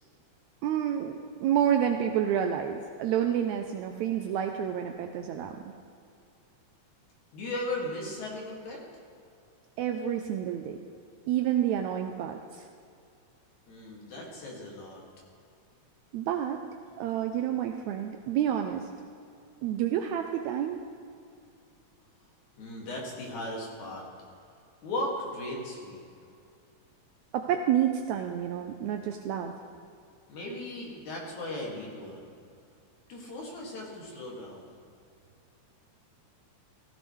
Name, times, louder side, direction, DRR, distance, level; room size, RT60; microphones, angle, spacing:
voice 1, 0.6-5.6 9.8-10.8 11.3-12.7 16.1-16.6 17.0-18.9 19.6-20.8 27.3-29.6, right 10 dB, 80° right, 5 dB, 1.8 m, -29 dB
voice 2, 7.3-8.8 13.7-15.0 22.6-24.1 24.8-26.1 30.3-32.3 33.1-34.7, left 1 dB, 70° left, -2 dB, 3.5 m, -37 dB
15.5 x 15.0 x 3.2 m, 2.4 s
omnidirectional pair, 3.5 m